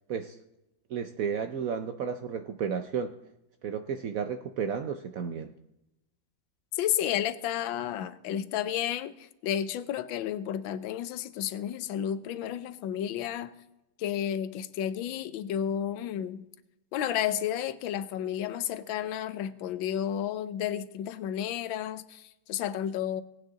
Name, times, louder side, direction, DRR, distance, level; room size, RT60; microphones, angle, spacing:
voice 1, 0.9-3.1 3.6-5.5, right 6 dB, 70° right, 0.8 m, -32 dB
voice 2, 6.8-13.5 14.0-16.4 16.9-23.2, left 10 dB, 85° left, 1.4 m, -32 dB
18.0 x 9.1 x 3.9 m
omnidirectional pair, 2.1 m